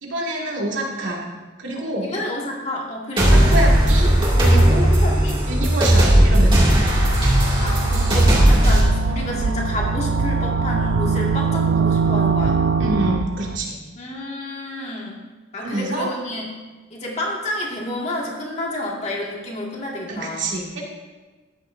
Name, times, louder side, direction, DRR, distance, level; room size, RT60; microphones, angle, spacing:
voice 1, 0.0-1.3 1.6-2.1 3.5-4.1 4.4-4.9 5.5-6.7 12.8-13.8 15.6-16.1 20.1-20.9, right 1 dB, 90° right, -2 dB, 2.2 m, -26 dB
voice 2, 2.0-3.4 5.0-5.4 7.6-12.6 14.0-15.2 15.5-16.5 16.9-20.5, left 1 dB, 35° left, -2 dB, 2.0 m, -29 dB
sound 1, 3.2-8.8, right 1 dB, 25° right, 2.4 m, -16 dB
sound 2, 7.2-13.6, right 4 dB, 70° right, 0.4 m, -22 dB
13.5 x 10.0 x 2.7 m, 1.3 s
head